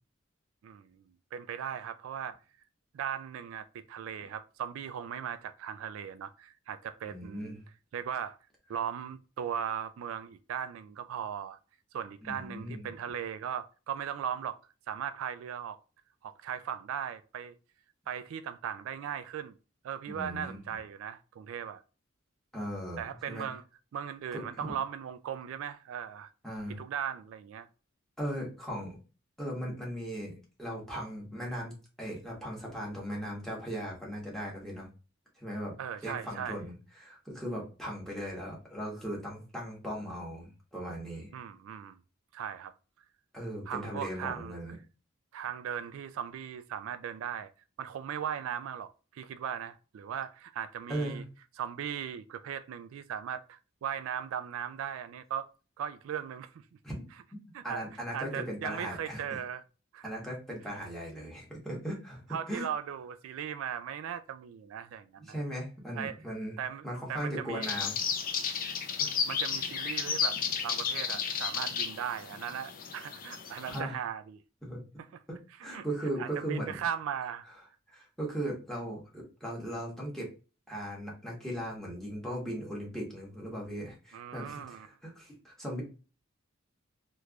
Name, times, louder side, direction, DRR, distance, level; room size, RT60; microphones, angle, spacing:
voice 1, 0.6-2.4 2.9-7.6 7.9-8.4 8.7-11.6 11.9-14.6 14.9-15.8 16.2-17.6 18.1-19.6 19.8-21.8 23.0-23.6 23.9-26.3 26.8-27.7 35.8-36.6 41.3-42.0 42.3-42.7 43.7-44.6 45.3-47.5 47.8-51.2 51.6-55.5 55.8-56.6 57.5-57.8 58.1-59.6 59.9-60.1 62.3-65.3 65.9-66.2 66.6-67.7 69.3-74.4 75.6-75.9 76.2-77.5 84.1-84.9, right 8 dB, 80° right, 0.3 m, -38 dB
voice 2, 7.0-7.6 12.3-12.9 20.1-20.6 22.5-23.5 24.3-24.8 26.4-26.8 28.2-29.0 29.4-34.9 35.4-35.8 36.0-41.3 43.3-44.7 50.9-51.2 56.8-57.0 57.6-59.4 60.0-62.2 62.5-62.7 65.3-68.0 69.0-69.1 73.6-74.0 74.6-74.8 75.3-76.8 77.9-80.3 80.7-85.8, equal, ahead, 1.2 m, -38 dB
sound 1, 67.6-73.8, left 6 dB, 45° left, 0.5 m, -33 dB
3.3 x 3.0 x 2.4 m
head